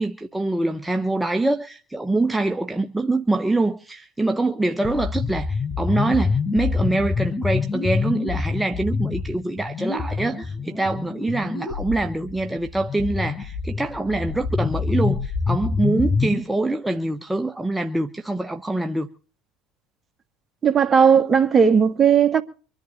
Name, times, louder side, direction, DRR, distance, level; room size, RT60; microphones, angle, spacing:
voice 1, 0.0-19.1, right 2 dB, 10° right, 1.0 m, -24 dB
sound 1, 4.8-16.4, left 4 dB, 30° left, 5.4 m, -26 dB
voice 2, 20.6-22.4, right 7 dB, 30° right, 1.8 m, -16 dB
25.0 x 11.0 x 4.2 m
hypercardioid pair, 85°, 0 cm